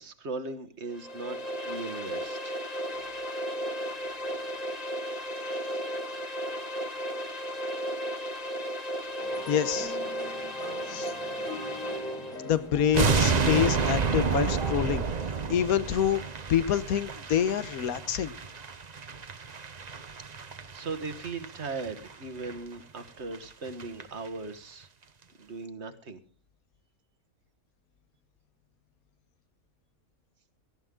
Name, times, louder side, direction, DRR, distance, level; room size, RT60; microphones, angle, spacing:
voice 1, 0.0-2.6 20.3-24.9 25.4-26.2, right 3 dB, 50° right, 11 dB, 1.6 m, -38 dB
sound 1, 0.9-12.5, equal, 30° left, 1.4 m, -35 dB
sound 2, 9.2-14.7, left 1 dB, 60° left, 5.4 m, -40 dB
voice 2, 9.5-10.0 10.9-11.1 12.4-15.1 15.5-16.2 16.5-18.3, left 9 dB, 85° left, 15 dB, 1.4 m, -27 dB
sound 3, 12.9-22.1 22.4-22.6 23.0-23.1 23.3-23.4 23.7-24.0 24.3-24.4, right 5 dB, 35° right, 0.9 m, -30 dB
18.0 x 14.5 x 3.7 m, 0.38 s
omnidirectional pair, 1.5 m